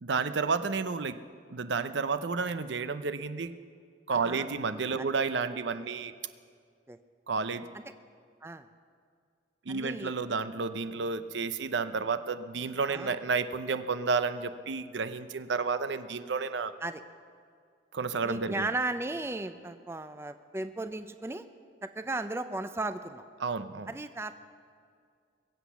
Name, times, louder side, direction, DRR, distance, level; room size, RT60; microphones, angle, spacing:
voice 1, 0.0-1.2 1.5-3.5 4.1-6.1 7.3-7.7 9.7-16.7 17.9-18.7 23.4-23.9, right 4 dB, 80° right, 12 dB, 0.6 m, -31 dB
voice 2, 4.1-4.5 5.0-5.1 6.9-7.0 8.4-8.6 9.7-10.1 12.9-13.1 16.8-17.0 18.2-21.5 21.8-23.2 23.9-24.3, right 2 dB, 15° right, 10 dB, 0.4 m, -35 dB
22.0 x 8.1 x 7.1 m, 2.1 s
head